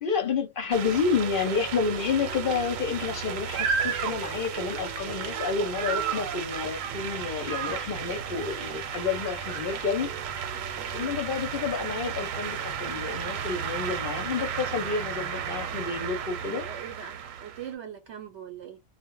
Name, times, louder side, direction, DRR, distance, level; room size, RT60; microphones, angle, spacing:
voice 1, 0.0-10.1 10.9-16.7, left 5 dB, 55° left, 0.6 m, -30 dB
sound 1, 0.7-17.7, right 7 dB, 85° right, 1.0 m, -33 dB
voice 2, 10.9-11.3 16.5-18.8, right 8 dB, 70° right, 0.8 m, -42 dB
2.1 x 2.0 x 3.6 m
omnidirectional pair, 1.3 m